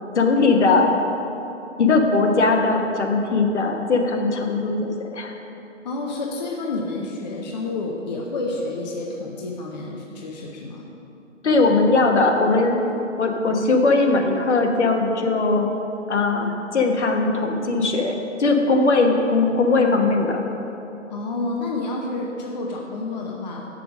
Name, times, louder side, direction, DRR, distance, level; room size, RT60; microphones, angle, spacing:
voice 1, 0.1-0.9 1.8-5.3 11.4-12.8 13.2-15.7 16.1-20.4, left 3 dB, 65° left, 3 dB, 1.2 m, -19 dB
voice 2, 5.8-10.8 21.1-23.7, left 2 dB, 35° left, -1 dB, 0.7 m, -29 dB
6.7 x 6.1 x 6.2 m, 2.9 s
figure-of-eight pair, 140°, 38 cm